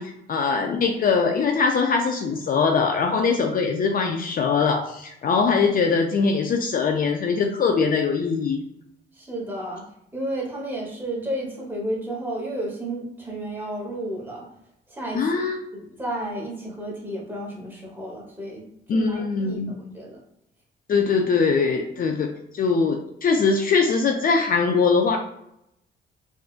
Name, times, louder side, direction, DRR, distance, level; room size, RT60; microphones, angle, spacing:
voice 1, 0.0-8.6 15.1-15.6 18.9-19.8 20.9-22.3 22.5-25.2, left 5 dB, 45° left, 3 dB, 0.4 m, -22 dB
voice 2, 9.1-9.9 10.1-14.5 14.9-15.2 15.7-20.2 20.9-21.1, right 1 dB, 10° right, -3 dB, 1.2 m, -32 dB
3.7 x 2.4 x 2.4 m, 0.79 s
cardioid pair, 90°, 20 cm